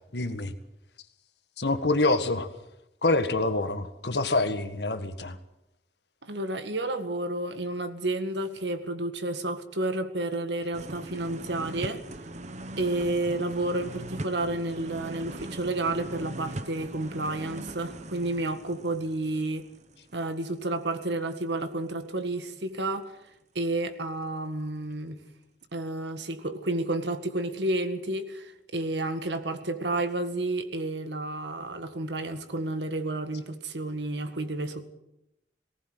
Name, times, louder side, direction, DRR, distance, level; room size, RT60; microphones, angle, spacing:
voice 1, 0.1-0.5 1.6-2.5 3.0-5.4, left 2 dB, 70° left, 1.7 m, -26 dB
voice 2, 6.2-12.0 12.8-19.7 20.1-23.1 23.6-25.2 25.7-34.9, right 2 dB, 80° right, 2.0 m, -31 dB
sound 1, 10.7-20.6 20.9-21.0, right 1 dB, 40° right, 1.3 m, -40 dB
19.5 x 18.0 x 8.0 m
head